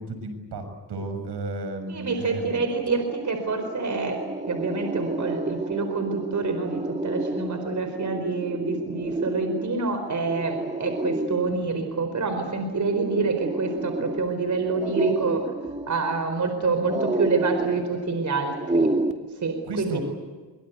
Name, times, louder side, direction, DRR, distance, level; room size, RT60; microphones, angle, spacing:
voice 1, 0.0-2.6 19.6-20.0, right 2 dB, 70° right, 8 dB, 6.6 m, -33 dB
voice 2, 1.9-4.2 4.5-15.4 15.9-18.9 19.4-20.0, right 4 dB, 40° right, 7 dB, 4.6 m, -27 dB
sound 1, 2.9-19.1, right 2 dB, 15° right, 2.6 m, -30 dB
24.5 x 23.5 x 8.2 m, 1.4 s
cardioid pair, 75°, 43 cm